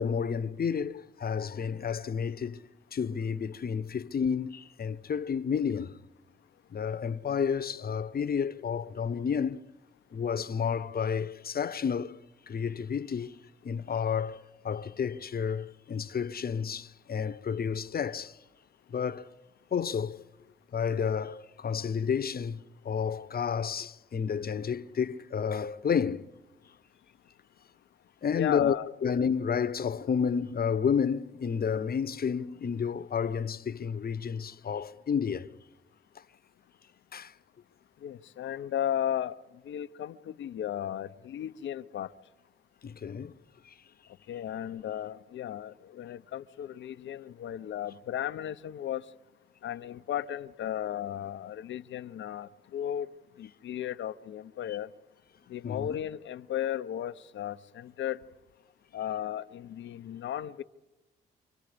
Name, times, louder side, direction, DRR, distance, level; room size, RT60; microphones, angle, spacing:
voice 1, 0.0-2.6 2.9-5.9 6.7-9.6 10.1-12.2 12.5-18.4 18.9-19.3 19.7-20.2 20.7-26.3 28.2-28.7 29.0-35.5 37.1-37.3 42.8-43.3 43.6-43.7 54.7-54.8 55.6-56.0, left 7 dB, 45° left, 1.1 m, -31 dB
voice 2, 28.3-28.9 38.0-39.4 39.6-42.1 44.3-49.0 49.6-53.1 53.4-54.9 55.5-58.2 58.9-60.6, left 10 dB, 65° left, 0.8 m, -35 dB
29.0 x 26.0 x 5.2 m
hypercardioid pair, 45°, 21 cm